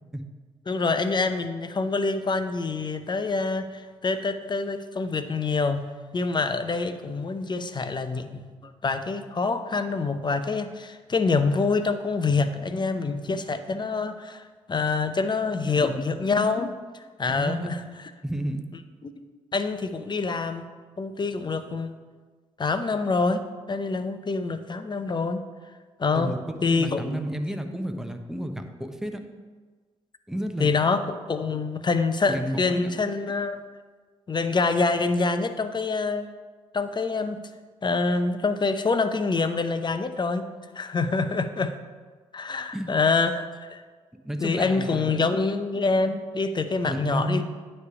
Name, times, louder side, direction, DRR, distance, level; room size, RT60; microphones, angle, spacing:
voice 1, 0.7-5.9 6.1-16.7 16.9-17.8 19.0-19.1 19.5-20.6 21.0-21.9 22.6-25.4 26.0-26.3 26.6-27.2 30.6-33.6 34.3-36.3 36.7-37.4 37.8-40.5 40.7-41.7 42.3-43.8 44.4-47.4, left 4 dB, 30° left, 9 dB, 0.8 m, -26 dB
voice 2, 15.6-16.1 17.3-17.7 18.2-18.6 26.1-26.4 26.7-29.2 30.3-30.7 32.3-32.9 42.7-42.9 44.2-45.2 46.8-47.4, right 1 dB, 5° right, 5 dB, 1.0 m, -31 dB
9.6 x 3.4 x 6.9 m, 1.4 s
hypercardioid pair, 45°, 14 cm